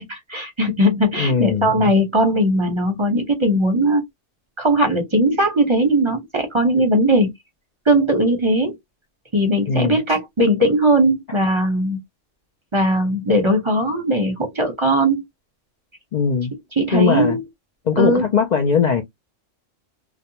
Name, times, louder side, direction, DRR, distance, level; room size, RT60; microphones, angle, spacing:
voice 1, 0.0-4.0 4.6-7.3 7.9-8.8 9.3-12.0 12.7-15.2 16.7-17.4 18.0-18.2, right 1 dB, 30° right, 0.6 m, -19 dB
voice 2, 1.2-1.7 9.7-10.0 16.1-16.5 16.9-17.4 17.9-19.0, left 6 dB, 85° left, 0.3 m, -19 dB
2.4 x 2.1 x 2.8 m
omnidirectional pair, 1.3 m